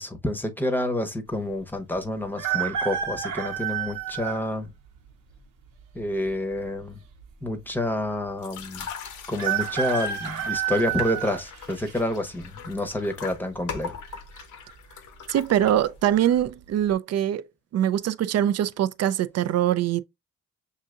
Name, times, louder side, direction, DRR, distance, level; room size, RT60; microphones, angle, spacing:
voice 1, 0.0-4.7 5.9-7.0 7.4-8.9 9.3-14.0, left 1 dB, 5° left, 0.8 m, -28 dB
sound 1, 2.4-4.4 5.1-5.2 6.3-6.9 7.2-7.3 7.5-7.6 9.4-12.0 12.5-12.9 14.1-14.4 14.7-14.8 15.3-15.7 16.1-16.3, right 9 dB, 80° right, 1.0 m, -29 dB
sound 2, 8.4-16.1, left 7 dB, 75° left, 0.8 m, -41 dB
voice 2, 15.3-17.4 17.7-20.0, right 11 dB, 55° right, 0.4 m, -23 dB
6.4 x 2.7 x 2.4 m
cardioid pair, 90°, 30 cm